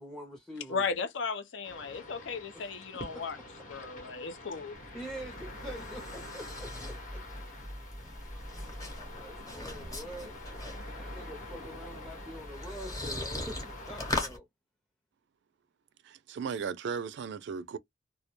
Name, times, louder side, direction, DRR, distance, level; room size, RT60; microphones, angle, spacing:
voice 1, 0.0-0.8 2.5-2.7 3.1-3.2 4.9-7.2 9.1-10.4 11.0-14.5, equal, ahead, 0.5 m, -45 dB
voice 2, 0.7-3.4 3.7-4.7, left 5 dB, 70° left, 0.5 m, -35 dB
sound 1, 1.6-14.1, left 2 dB, 45° left, 0.9 m, -47 dB
sound 2, 4.7-14.4, left 1 dB, 20° left, 0.9 m, -40 dB
voice 3, 16.0-17.8, right 6 dB, 65° right, 0.3 m, -36 dB
2.2 x 2.1 x 2.9 m
head